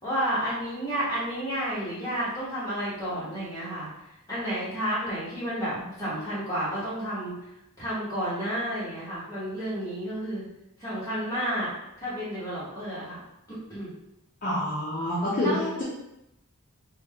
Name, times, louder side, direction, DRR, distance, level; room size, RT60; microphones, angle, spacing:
voice 1, 0.0-3.9 4.3-7.4 7.8-10.4 10.8-11.7 12.0-13.2 13.5-13.9 15.4-15.8, equal, 15° left, -10 dB, 1.4 m, -31 dB
voice 2, 14.4-15.8, left 1 dB, 35° left, -8 dB, 0.6 m, -27 dB
3.0 x 2.3 x 3.5 m, 0.86 s
head